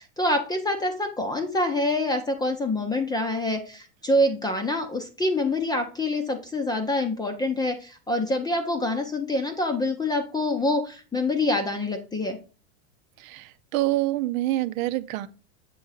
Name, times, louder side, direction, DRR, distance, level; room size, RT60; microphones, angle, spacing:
voice 1, 0.0-12.4, left 1 dB, 10° left, 0.6 m, -26 dB
voice 2, 13.7-15.3, right 16 dB, 75° right, 0.7 m, -26 dB
7.6 x 3.8 x 4.0 m
supercardioid pair, 145°, 42 cm